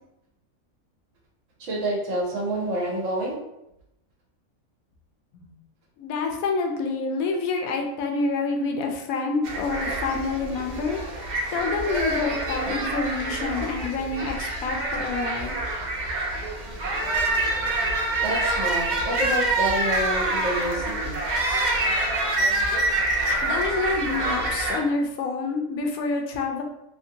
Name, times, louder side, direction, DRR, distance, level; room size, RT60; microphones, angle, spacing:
voice 1, 1.6-3.3 18.2-21.2, right 1 dB, 70° right, -2 dB, 1.1 m, -28 dB
voice 2, 6.0-11.0 11.5-15.6 23.4-26.6, left 4 dB, 85° left, 3 dB, 1.0 m, -27 dB
sound 1, 9.4-24.8, right 2 dB, 90° right, 0.4 m, -26 dB
2.8 x 2.6 x 2.7 m, 0.85 s
omnidirectional pair, 1.4 m